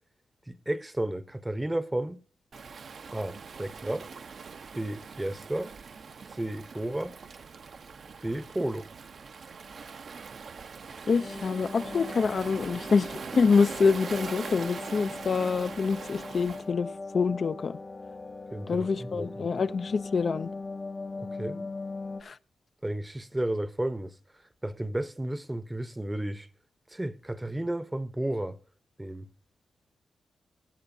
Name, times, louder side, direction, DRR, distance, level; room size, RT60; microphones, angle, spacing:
voice 1, 0.5-2.2 3.1-4.1 4.8-5.7 6.3-7.2 8.2-8.9 18.5-19.5 21.2-21.7 22.8-24.1 24.6-26.5 26.9-28.6 29.0-29.3, right 1 dB, 15° right, 0.8 m, -33 dB
Waves surf, 2.5-16.7, right 5 dB, 60° right, 0.7 m, -42 dB
voice 2, 11.1-16.9 17.1-17.8 18.7-20.5 22.2-22.4, left 5 dB, 55° left, 0.4 m, -26 dB
sound 1, 11.2-22.2, left 3 dB, 35° left, 1.0 m, -40 dB
20.0 x 7.9 x 2.7 m
cardioid pair, 90°, 0 cm